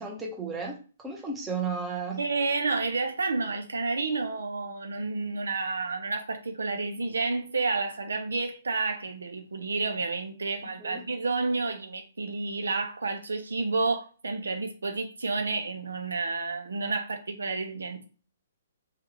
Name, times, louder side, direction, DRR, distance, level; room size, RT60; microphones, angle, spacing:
voice 1, 0.0-2.2 10.8-11.0, right 4 dB, 10° right, 0.8 m, -34 dB
voice 2, 2.2-18.1, right 3 dB, 85° right, 0.6 m, -30 dB
3.5 x 2.4 x 3.0 m
hypercardioid pair, 140°, 0 cm